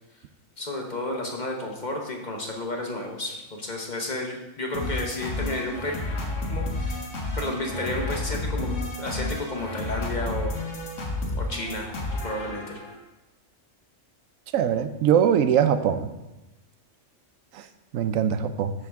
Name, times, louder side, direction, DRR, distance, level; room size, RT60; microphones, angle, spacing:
voice 1, 0.6-5.9 6.5-7.0 7.4-10.5 11.3-11.9 12.2-12.8, left 1 dB, 35° left, 1 dB, 1.2 m, -32 dB
sound 1, 4.7-13.0, left 2 dB, 70° left, 1.8 m, -31 dB
voice 2, 14.5-16.1 17.5-17.7 17.9-18.7, right 8 dB, 90° right, 11 dB, 1.0 m, -22 dB
13.5 x 4.7 x 3.5 m, 1.0 s
omnidirectional pair, 1.3 m